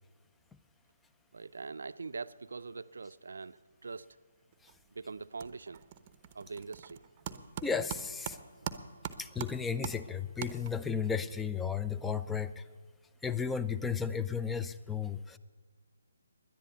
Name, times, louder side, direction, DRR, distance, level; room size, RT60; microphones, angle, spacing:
voice 1, 1.3-4.2 4.9-5.8 6.3-7.0, right 4 dB, 70° right, 15 dB, 0.4 m, -43 dB
sound 1, 4.5-4.9 5.2-11.0, right 9 dB, 30° right, 0.7 m, -43 dB
voice 2, 7.6-8.4 9.2-12.6 13.2-15.4, left 6 dB, 5° left, 12 dB, 0.4 m, -34 dB
10.5 x 10.5 x 9.2 m, 1.5 s
hypercardioid pair, 155°, 0 cm